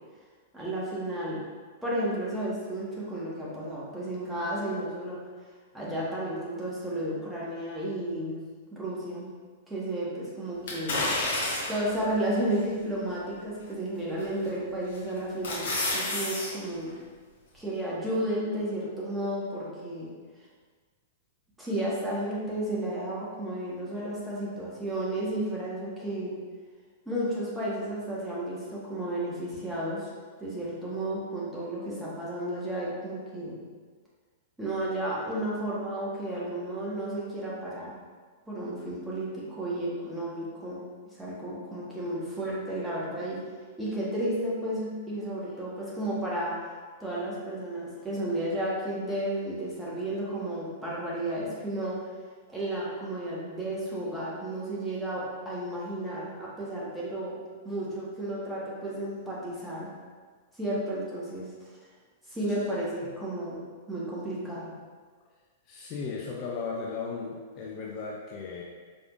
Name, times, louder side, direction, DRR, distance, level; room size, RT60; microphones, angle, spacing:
voice 1, 0.5-1.4 1.8-5.2 5.7-8.4 8.7-9.3 9.7-11.0 11.7-16.9 17.5-20.1 21.6-26.3 27.0-30.1 30.4-33.6 34.6-37.9 38.5-40.8 41.2-43.4 43.8-46.6 47.0-52.0 52.5-59.9 60.6-61.5 62.3-63.6 63.9-64.7, right 1 dB, 5° right, -8 dB, 1.2 m, -32 dB
sound 1, 10.7-11.9 12.5-12.6 14.2-14.5 14.9-16.5 16.9-17.0, left 2 dB, 55° left, 1.1 m, -29 dB
voice 2, 65.7-68.6, left 5 dB, 35° left, -2 dB, 0.5 m, -36 dB
4.8 x 3.4 x 2.5 m, 1.5 s
figure-of-eight pair, 100°, 0 cm